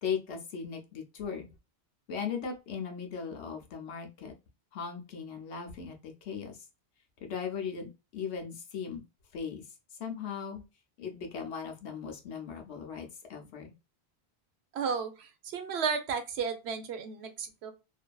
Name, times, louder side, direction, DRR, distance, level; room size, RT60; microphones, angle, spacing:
voice 1, 0.0-1.5 2.1-4.3 4.7-6.6 7.2-9.0 9.3-9.6 10.0-10.6 11.0-13.7, left 6 dB, 90° left, 3 dB, 1.0 m, -38 dB
voice 2, 14.7-17.7, right 6 dB, 75° right, 7 dB, 0.9 m, -33 dB
2.7 x 2.5 x 2.2 m, 0.27 s
omnidirectional pair, 1.1 m